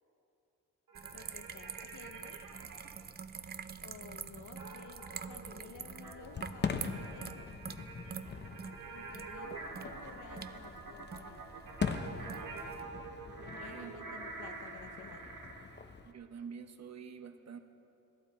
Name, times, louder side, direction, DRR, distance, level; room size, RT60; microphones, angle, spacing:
sound 1, 0.9-12.8, right 6 dB, 30° right, 0.4 m, -47 dB
sound 2, 0.9-3.0 4.6-15.7, right 3 dB, 70° right, 2.0 m, -47 dB
voice 1, 1.1-2.4 3.8-7.7 8.9-9.5 9.8-11.5 12.2-12.6 13.4-15.4, left 7 dB, 65° left, 9 dB, 0.9 m, -54 dB
Fireworks, 6.2-16.1, left 5 dB, 30° left, 0.7 m, -42 dB
voice 2, 13.6-14.1 16.0-17.6, right 6 dB, 50° right, 8 dB, 0.9 m, -47 dB
18.5 x 14.5 x 4.3 m, 2.7 s
wide cardioid pair, 145°, 33 cm